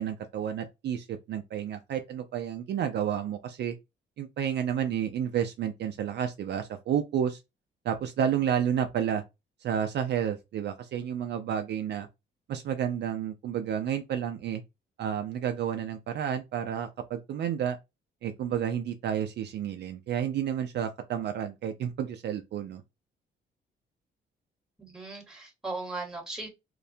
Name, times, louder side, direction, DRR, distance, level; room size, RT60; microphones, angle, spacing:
voice 1, 0.0-3.7 4.2-7.4 7.9-9.2 9.6-12.1 12.5-14.6 15.0-17.8 18.2-22.8, right 9 dB, 60° right, 0.4 m, -31 dB
voice 2, 24.8-26.5, right 3 dB, 5° right, 1.1 m, -37 dB
2.3 x 2.1 x 2.7 m
cardioid pair, 90°, 20 cm